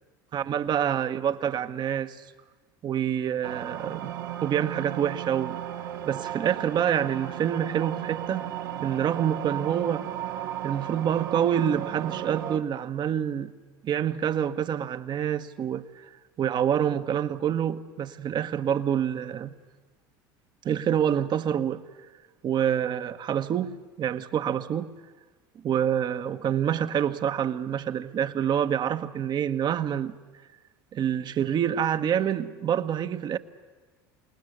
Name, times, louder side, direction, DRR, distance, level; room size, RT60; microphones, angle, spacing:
voice 1, 0.3-2.2 2.8-5.6 6.0-8.5 8.8-10.1 10.6-13.5 13.8-16.1 16.4-19.5 20.6-21.8 22.4-24.9 25.6-30.1 30.9-33.4, right 9 dB, 40° right, 1.1 m, -27 dB
sound 1, 3.4-12.6, right 12 dB, 80° right, 1.4 m, -35 dB
27.5 x 19.5 x 8.0 m
hypercardioid pair, 75°, 11 cm